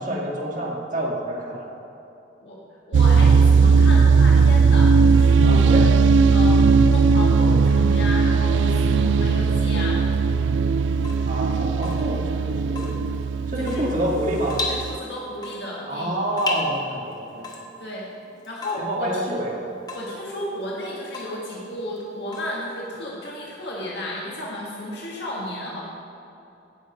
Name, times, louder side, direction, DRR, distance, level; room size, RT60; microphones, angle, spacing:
voice 1, 0.0-1.7 5.4-5.9 11.3-13.0 13.5-14.6 15.9-17.5 18.8-19.7, right 1 dB, 45° right, -2 dB, 1.8 m, -27 dB
voice 2, 2.9-5.8 6.3-6.6 6.9-10.3 13.6-13.8 14.7-16.2 17.8-18.0 18.5-19.1 19.9-25.8, left 1 dB, 65° left, -4 dB, 1.7 m, -33 dB
sound 1, 2.9-15.0, right 5 dB, 80° right, 0.3 m, -18 dB
Water tap faucet / Drip, 10.9-23.1, left 2 dB, 20° left, 1.2 m, -36 dB
16.5 x 6.4 x 5.2 m, 2.9 s
head